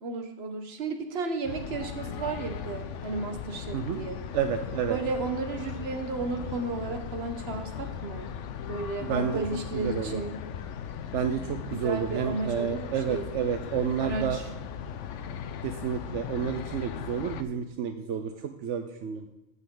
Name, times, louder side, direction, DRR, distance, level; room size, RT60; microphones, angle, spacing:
voice 1, 0.0-4.2 4.9-8.3 8.7-10.4 11.7-13.3 14.0-14.4, right 3 dB, 60° right, 6 dB, 1.3 m, -33 dB
sound 1, 1.4-17.4, left 8 dB, 85° left, 1.0 m, -38 dB
voice 2, 3.7-4.0 4.3-5.0 9.0-9.4 9.7-10.2 11.1-14.4 15.6-19.3, right 7 dB, 85° right, 7 dB, 1.0 m, -30 dB
15.0 x 5.6 x 3.8 m, 1.0 s
omnidirectional pair, 1.2 m